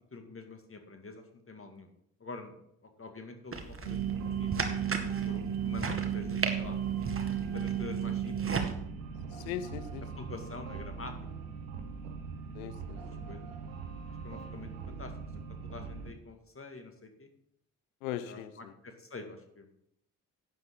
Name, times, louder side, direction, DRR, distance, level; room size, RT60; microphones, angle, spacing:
voice 1, 0.1-1.9 2.2-2.5 2.8-4.0 4.4-5.0 5.2-6.8 7.5-8.4 10.2-11.1 12.6-12.7 13.3-13.4 14.2-15.1 15.6-17.3 18.2-18.4 18.8-19.7, left 3 dB, 30° left, 5 dB, 2.3 m, -46 dB
sound 1, 3.5-8.7, right 4 dB, 30° right, 1.9 m, -37 dB
sound 2, 3.8-16.1, right 8 dB, 85° right, 1.0 m, -36 dB
voice 2, 9.3-10.3 12.5-13.2 18.0-18.7, left 11 dB, 85° left, 13 dB, 0.8 m, -40 dB
11.5 x 9.4 x 3.9 m, 0.74 s
hypercardioid pair, 40°, 40 cm